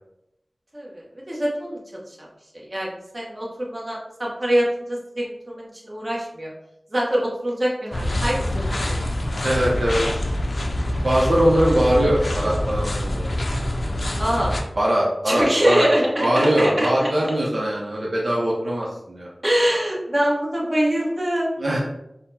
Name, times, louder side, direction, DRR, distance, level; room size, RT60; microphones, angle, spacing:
voice 1, 0.7-1.8 2.1-2.3 2.5-6.5 6.9-9.0 14.2-14.5 15.2-17.3 19.4-21.5, equal, 35° right, -3 dB, 1.1 m, -24 dB
sound 1, 7.9-14.6, left 1 dB, 75° left, 0.5 m, -25 dB
voice 2, 9.4-10.0 11.0-13.3 14.8-15.9 16.2-19.3 21.6-21.8, equal, 70° right, -4 dB, 0.7 m, -21 dB
4.0 x 2.2 x 4.1 m, 0.84 s
wide cardioid pair, 65°, 0 cm